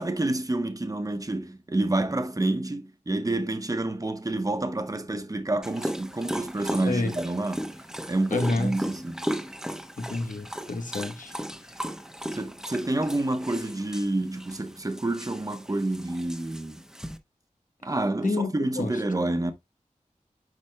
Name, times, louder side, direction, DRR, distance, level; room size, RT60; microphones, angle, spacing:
voice 1, 0.0-7.7 8.1-9.3 12.3-16.8 17.8-19.5, right 2 dB, 25° right, 1.0 m, -28 dB
Dog, 5.6-17.2, equal, 5° right, 1.0 m, -36 dB
voice 2, 8.3-8.7 10.0-11.3 18.2-18.5 18.8-18.9, left 3 dB, 85° left, 1.2 m, -28 dB
9.9 x 5.1 x 2.2 m
wide cardioid pair, 65°, 13 cm